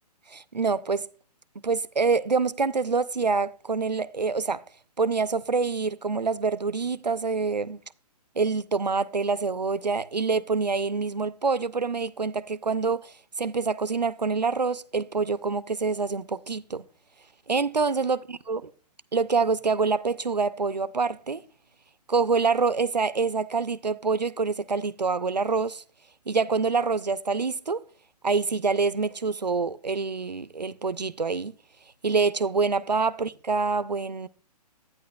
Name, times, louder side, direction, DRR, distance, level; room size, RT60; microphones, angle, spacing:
voice 1, 0.3-1.0 1.6-4.6 5.0-7.8 8.4-16.8 17.5-18.6 19.1-21.4 22.1-25.8 26.3-27.8 28.2-31.5 32.0-34.3, right 4 dB, 90° right, 0.6 m, -26 dB
11.0 x 9.4 x 2.3 m
figure-of-eight pair, 125°, 21 cm